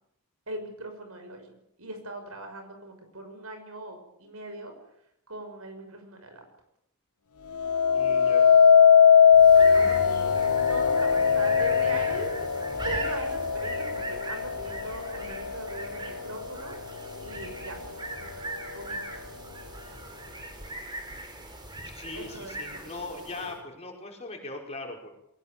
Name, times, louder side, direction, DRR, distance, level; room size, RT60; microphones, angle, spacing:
voice 1, 0.5-4.7 5.3-6.4 9.7-12.4 12.8-16.8 17.2-17.9 18.3-18.4 18.7-19.0 22.1-23.1 23.3-23.6, right 1 dB, 70° right, 5 dB, 6.3 m, -40 dB
sound 1, 7.5-16.7 17.2-17.7, left 7 dB, 85° left, 1.0 m, -21 dB
voice 2, 7.9-8.5 9.5-9.6 21.9-25.1, left 3 dB, 30° left, 1 dB, 5.5 m, -40 dB
sound 2, 9.3-23.6, right 2 dB, 20° right, 4.5 m, -40 dB
22.0 x 19.0 x 8.8 m, 0.78 s
head